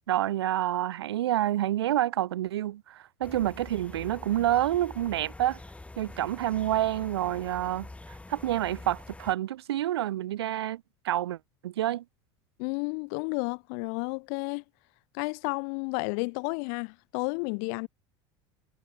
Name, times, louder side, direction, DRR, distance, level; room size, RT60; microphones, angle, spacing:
voice 1, 0.1-5.6 6.0-7.9 8.3-11.4 11.6-12.0, right 13 dB, 90° right, 0.8 m, -28 dB
sound 1, 3.2-9.3, left 2 dB, 10° left, 3.3 m, -45 dB
voice 2, 12.6-14.6 15.1-17.9, left 40 dB or more, 65° left, 0.4 m, -32 dB
hypercardioid pair, 90°, 13 cm